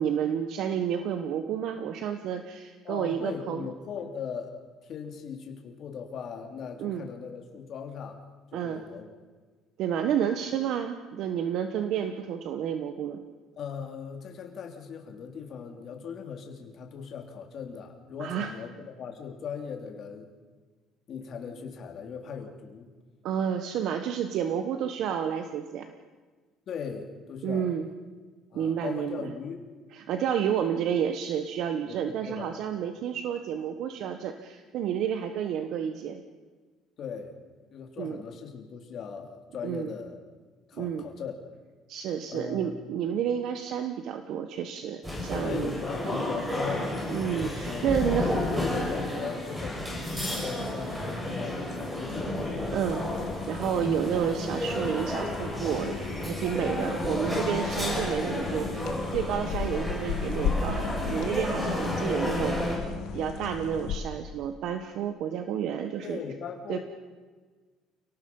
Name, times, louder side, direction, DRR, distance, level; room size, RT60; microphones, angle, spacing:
voice 1, 0.0-3.7 6.8-7.1 8.5-8.8 9.8-13.2 18.2-18.5 23.2-25.9 27.4-27.9 28.5-29.3 29.9-36.2 38.0-38.2 39.6-39.9 40.8-41.0 41.9-45.8 47.1-48.3 52.7-53.0 53.5-66.2 66.7-66.8, right 8 dB, 60° right, 7 dB, 1.3 m, -30 dB
voice 2, 2.8-4.5 4.8-8.2 8.5-9.1 13.6-20.3 21.1-22.9 26.7-27.7 28.5-29.6 31.9-32.6 37.0-37.4 37.7-40.2 40.7-41.3 42.3-42.8 45.4-46.9 47.6-52.4 66.0-66.8, left 6 dB, 45° left, 3 dB, 3.3 m, -39 dB
sound 1, 45.0-62.8, left 1 dB, 10° right, 6.5 m, -32 dB
sound 2, 52.1-64.0, left 6 dB, 65° left, 2.3 m, -36 dB
29.0 x 18.5 x 5.6 m, 1.4 s
cardioid pair, 150°, 0 cm